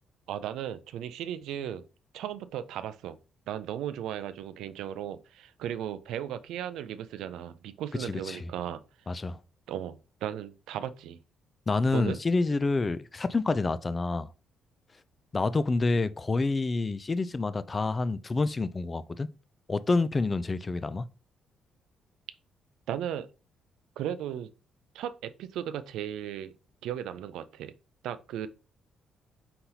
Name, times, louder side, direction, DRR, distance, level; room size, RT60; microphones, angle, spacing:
voice 1, 0.3-1.8 2.1-3.2 3.5-8.8 9.7-11.2 11.9-12.2 22.9-23.3 24.0-24.5 24.9-26.5 26.8-27.7 28.0-28.5, right 10 dB, 85° right, 0.3 m, -36 dB
voice 2, 8.0-8.5 9.1-9.4 11.7-14.3 15.3-19.3 19.7-21.1, left 3 dB, 30° left, 0.3 m, -28 dB
4.3 x 3.8 x 2.8 m
cardioid pair, 90°, 0 cm